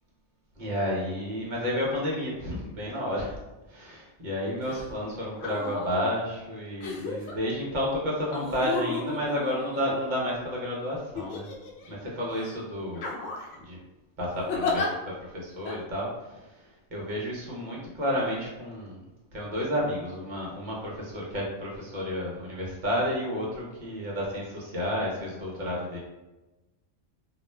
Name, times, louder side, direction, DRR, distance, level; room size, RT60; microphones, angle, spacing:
voice 1, 0.6-3.4 3.7-11.5 11.9-13.0 13.6-13.8 14.2-16.5 16.9-19.0 19.3-26.0, equal, 50° right, -4 dB, 0.7 m, -31 dB
sound 1, 4.6-4.9 5.3-6.0 6.8-7.3 8.3-10.4 11.2-11.9 12.3-12.5 13.0-13.6 14.5-14.9 15.7-15.8, left 3 dB, 70° left, 0.8 m, -33 dB
2.3 x 2.1 x 3.2 m, 1.1 s
omnidirectional pair, 1.3 m